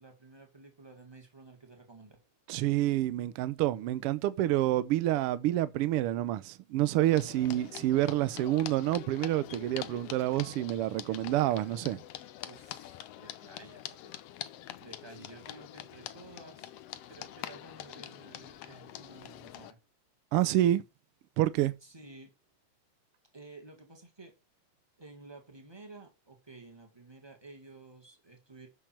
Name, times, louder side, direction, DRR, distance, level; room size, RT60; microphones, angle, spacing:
voice 1, 0.0-2.2 7.2-7.4 12.5-14.1 14.8-16.7 17.1-19.8 21.8-22.3 23.3-24.3 25.0-28.7, right 3 dB, 15° right, 1.1 m, -52 dB
voice 2, 2.5-12.0 20.3-20.8 21.4-21.7, right 14 dB, 90° right, 1.2 m, -28 dB
sound 1, 7.0-19.7, left 13 dB, 75° left, 1.5 m, -45 dB
6.7 x 6.0 x 5.7 m
omnidirectional pair, 3.3 m